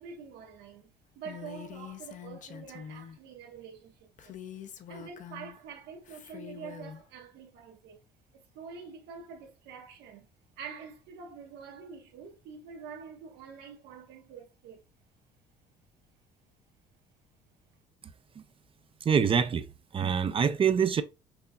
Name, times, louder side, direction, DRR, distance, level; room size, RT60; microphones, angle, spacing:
voice 1, 0.0-4.3 4.9-8.0 8.3-10.3 10.6-14.8, right 6 dB, 85° right, 1.1 m, -46 dB
Female speech woman speaking, 1.2-3.2 4.2-5.6 6.0-7.0, left 8 dB, 50° left, 0.6 m, -45 dB
voice 2, 19.0-19.7 19.9-21.0, right 7 dB, 30° right, 0.4 m, -25 dB
5.9 x 2.7 x 2.2 m
cardioid pair, 110°, 17 cm